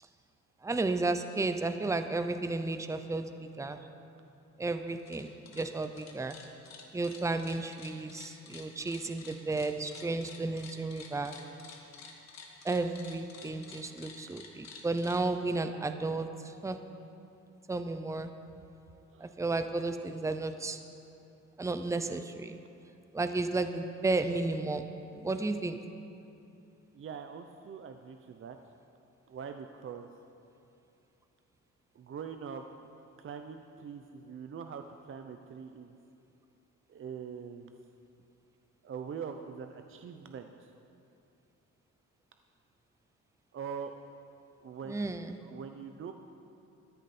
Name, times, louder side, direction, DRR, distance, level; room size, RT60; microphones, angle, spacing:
voice 1, 0.6-3.8 4.6-6.4 6.9-11.3 12.6-16.8 17.7-18.3 19.2-20.8 21.6-22.6 23.1-25.8 44.9-45.4, right 3 dB, 10° right, 9 dB, 0.6 m, -33 dB
sound 1, 4.9-5.2 5.5-15.2, left 5 dB, 60° left, 1.7 m, -50 dB
voice 2, 26.9-28.6 29.3-30.1 31.9-32.6 33.2-36.0 36.9-37.7 38.8-40.7 43.5-43.9 44.6-45.2 45.5-46.1, right 7 dB, 45° right, 6 dB, 0.7 m, -43 dB
14.0 x 10.0 x 4.3 m, 2.8 s
cardioid pair, 90°, 30 cm